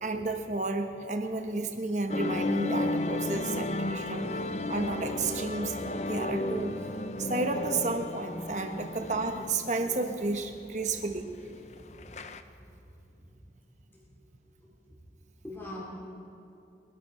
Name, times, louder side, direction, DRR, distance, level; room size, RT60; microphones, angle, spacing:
voice 1, 0.0-4.3 4.7-6.8 7.2-11.3, right 3 dB, 40° right, 5 dB, 1.1 m, -32 dB
sound 1, 2.1-12.4, left 2 dB, 40° left, 0.6 m, -34 dB
voice 2, 14.6-14.9 15.4-15.8, left 1 dB, 15° left, -6 dB, 3.7 m, -44 dB
24.0 x 11.5 x 4.3 m, 2.8 s
head